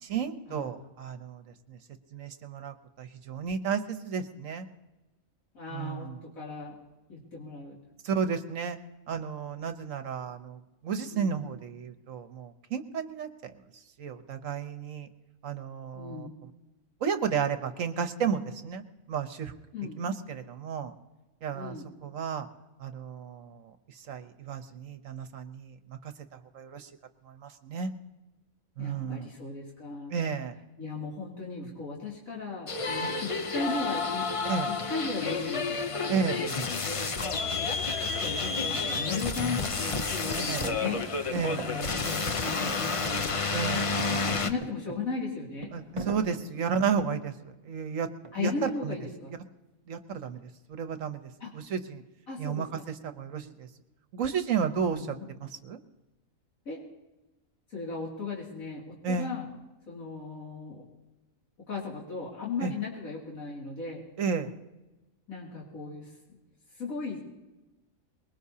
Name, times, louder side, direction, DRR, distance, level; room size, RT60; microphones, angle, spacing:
voice 1, 0.0-1.8 2.1-4.7 5.7-6.2 8.0-8.8 9.1-13.6 14.0-15.1 15.4-16.5 17.0-19.5 20.0-20.9 21.4-21.8 22.0-22.5 22.8-26.9 27.2-27.9 28.8-29.3 30.1-30.5 33.0-33.1 34.4-34.7 36.1-36.4 40.4-40.7 41.3-41.7 43.5-44.0 44.4-44.5 45.7-47.3 47.6-48.1 48.4-48.9 49.9-52.0 52.4-53.7 54.1-55.8 59.0-59.3 62.6-62.7 64.2-64.6, right 6 dB, 70° right, 9 dB, 1.3 m, -33 dB
voice 2, 5.5-6.7 7.1-7.8 11.1-11.3 15.9-16.3 19.7-20.0 21.5-21.9 28.8-30.1 30.8-34.3 34.7-37.2 37.8-37.9 38.2-41.0 41.6-43.4 44.2-45.7 48.3-49.3 51.4-51.5 52.3-52.9 54.9-55.3 56.6-56.8 57.7-59.5 59.9-60.8 61.7-64.0 65.3-66.1 66.8-67.3, left 4 dB, 75° left, -4 dB, 3.2 m, -36 dB
sound 1, 32.7-44.5, left 4 dB, 40° left, 0.5 m, -30 dB
sound 2, 40.2-43.4 43.7-47.3 48.2-48.7, right 2 dB, 25° right, 0.9 m, -41 dB
23.5 x 21.0 x 2.8 m, 1.1 s
omnidirectional pair, 1.5 m